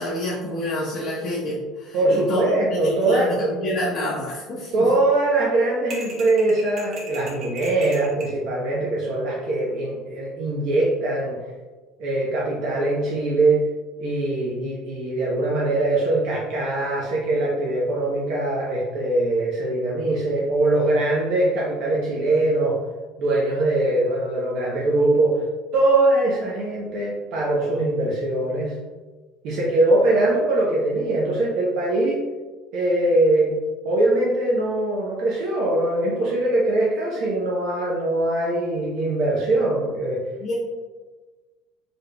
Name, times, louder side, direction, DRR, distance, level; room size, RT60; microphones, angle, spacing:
voice 1, 0.0-4.9 40.4-40.5, left 1 dB, 40° left, -6 dB, 0.7 m, -28 dB
voice 2, 1.9-3.5 4.7-11.4 12.0-13.6 14.0-22.8 23.2-25.4 25.7-28.7 29.4-32.2 32.7-33.5 33.8-40.2, right 2 dB, 55° right, -4 dB, 0.7 m, -22 dB
sound 1, 5.9-8.4, right 2 dB, 40° right, 1.0 m, -38 dB
4.2 x 3.3 x 2.2 m, 1.3 s
cardioid pair, 145°, 0 cm